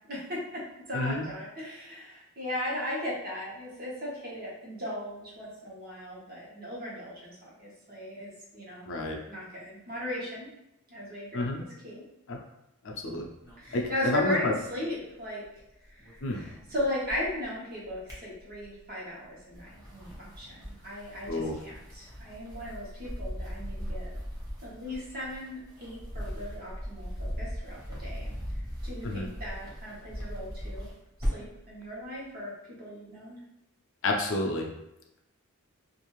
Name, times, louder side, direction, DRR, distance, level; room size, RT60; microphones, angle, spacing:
voice 1, 0.1-0.6 0.9-8.9 9.3-10.5 10.9-12.0 13.6-15.4 15.9-24.2 24.6-28.3 28.8-30.9 31.3-32.5 32.8-33.4, left 1 dB, 45° right, -6 dB, 1.0 m, -37 dB
voice 2, 0.9-1.3 8.9-9.2 11.3-11.6 12.3-12.4 12.8-13.3 13.7-14.5 16.2-16.4 21.3-21.6 29.0-29.3 34.0-34.7, left 2 dB, 60° left, 1 dB, 0.5 m, -29 dB
sound 1, 13.4-15.6 15.9-17.5 17.8-18.9 19.4-31.6, equal, 15° right, 0.9 m, -39 dB
2.5 x 2.4 x 3.0 m, 0.86 s
head